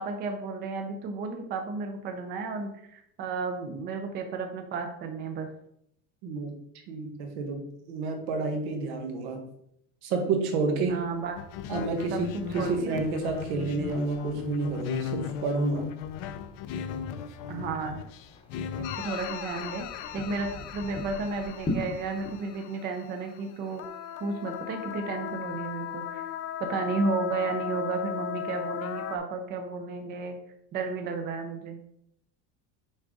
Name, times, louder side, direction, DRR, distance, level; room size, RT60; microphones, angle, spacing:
voice 1, 0.0-5.5 10.9-11.3 12.1-13.0 17.5-18.0 18.8-19.8 20.1-23.8 24.2-26.3 26.6-30.4 30.7-31.9, right 4 dB, 30° right, 5 dB, 0.6 m, -33 dB
voice 2, 6.2-6.6 6.9-9.5 10.0-11.0 11.7-15.9, right 4 dB, 80° right, 4 dB, 1.5 m, -30 dB
sound 1, 10.8-22.3, left 2 dB, 15° left, 0.9 m, -43 dB
sound 2, 11.4-19.2, left 7 dB, 55° left, 0.6 m, -36 dB
sound 3, 18.8-23.4 23.7-29.2, left 10 dB, 90° left, 0.7 m, -37 dB
6.2 x 4.8 x 3.8 m, 0.73 s
cardioid pair, 180°, 34 cm